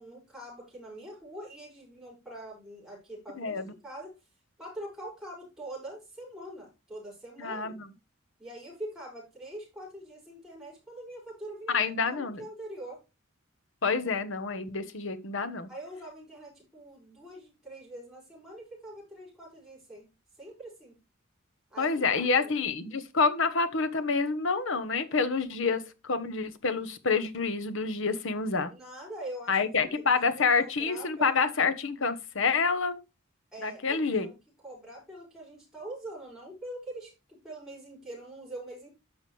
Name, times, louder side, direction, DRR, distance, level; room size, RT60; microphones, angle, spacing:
voice 1, 0.0-4.1 4.6-7.8 8.4-13.0 15.7-20.1 20.4-20.9 21.7-22.5 28.7-30.1 30.4-31.4 33.5-34.3 34.6-38.9, right 1 dB, ahead, 5.9 m, -44 dB
voice 2, 3.4-3.7 7.4-7.9 11.7-12.4 13.8-15.7 21.8-28.7 29.5-33.0 33.6-34.3, left 4 dB, 65° left, 1.1 m, -28 dB
10.5 x 6.3 x 3.3 m
head